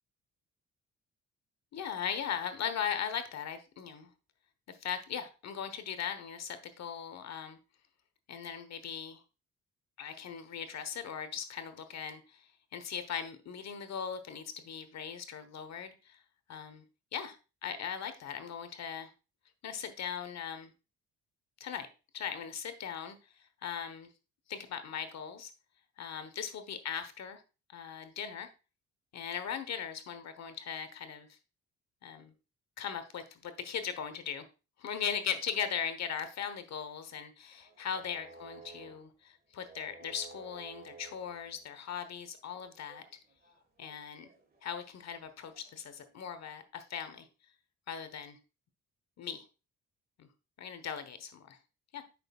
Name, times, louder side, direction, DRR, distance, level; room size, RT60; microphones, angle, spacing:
voice 1, 1.7-4.1 4.7-7.6 8.3-9.2 10.0-16.2 16.5-16.8 17.1-17.4 17.6-19.1 19.6-20.7 21.6-21.9 22.1-24.1 24.5-25.5 26.0-27.4 27.7-28.5 29.1-31.4 32.0-32.3 32.8-34.5 34.8-43.0 43.8-44.3 44.6-47.3 47.9-48.4 49.2-49.4 50.2-50.3 50.6-51.6 51.9-52.0, left 8 dB, 60° left, 10 dB, 1.2 m, -39 dB
sound 1, 37.4-39.2 39.6-46.3 46.6-46.7, right 4 dB, 30° right, 1.7 m, -55 dB
8.7 x 6.2 x 2.4 m, 0.31 s
cardioid pair, 90°, 30 cm